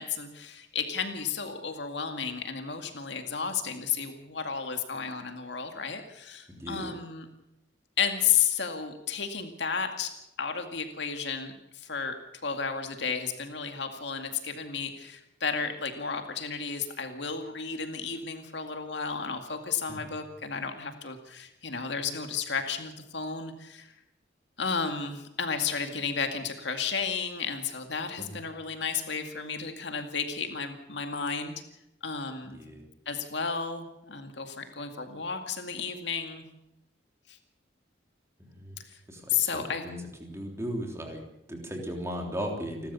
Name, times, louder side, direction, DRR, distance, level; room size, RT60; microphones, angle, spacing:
voice 1, 0.0-7.3 8.0-10.1 10.4-23.9 24.6-31.6 32.0-32.6 33.1-36.4 37.3-37.4 38.8-39.0 39.3-39.8, left 6 dB, 70° left, 5 dB, 2.2 m, -32 dB
voice 2, 6.5-6.9 19.9-20.1 28.2-28.4 32.4-32.9 38.4-38.8 39.1-41.2 41.5-42.9, equal, 15° right, 1 dB, 3.5 m, -37 dB
29.5 x 13.0 x 7.0 m, 0.88 s
head